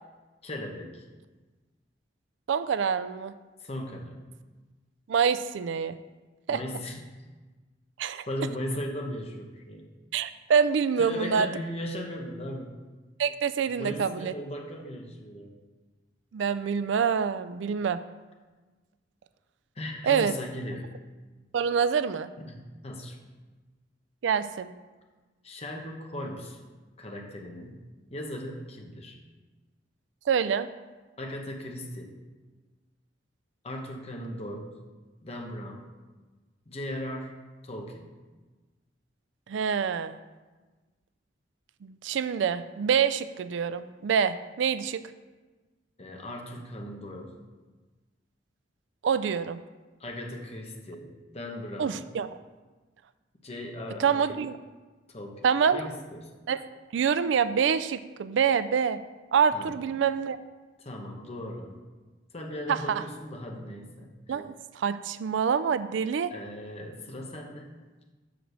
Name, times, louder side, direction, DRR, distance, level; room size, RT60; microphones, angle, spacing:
voice 1, 0.4-1.0 3.6-4.2 6.5-7.1 8.3-9.9 11.0-12.8 13.7-15.5 19.7-20.9 22.4-23.2 25.4-26.6 27.0-29.2 31.2-32.1 33.6-34.7 35.2-35.9 36.7-38.0 46.0-47.4 50.0-52.0 53.4-54.3 55.1-56.3 59.5-59.8 60.8-61.8 62.3-64.1 66.3-67.7, left 1 dB, 35° left, 2 dB, 1.1 m, -38 dB
voice 2, 2.5-3.3 5.1-6.0 6.5-6.6 8.0-8.2 10.1-11.5 13.2-14.3 16.3-18.0 20.0-20.3 21.5-22.3 24.2-24.7 30.3-30.7 39.5-40.2 41.8-45.0 49.0-49.6 51.8-52.3 54.0-54.6 55.4-55.8 56.5-56.6 56.9-59.0 59.3-60.4 62.7-63.0 64.3-66.3, right 7 dB, 75° right, 13 dB, 0.3 m, -26 dB
6.1 x 5.1 x 6.5 m, 1.3 s
head